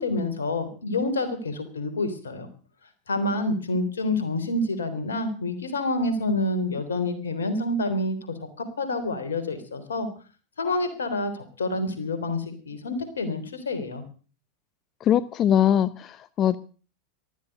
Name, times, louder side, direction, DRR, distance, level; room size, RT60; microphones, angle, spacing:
voice 1, 0.0-2.5 3.1-8.2 8.6-10.1 10.6-14.0, left 2 dB, 80° left, 9 dB, 3.5 m, -28 dB
voice 2, 15.0-16.6, left 10 dB, 40° left, 16 dB, 0.7 m, -22 dB
14.5 x 13.5 x 6.6 m, 0.38 s
hypercardioid pair, 90°, 0 cm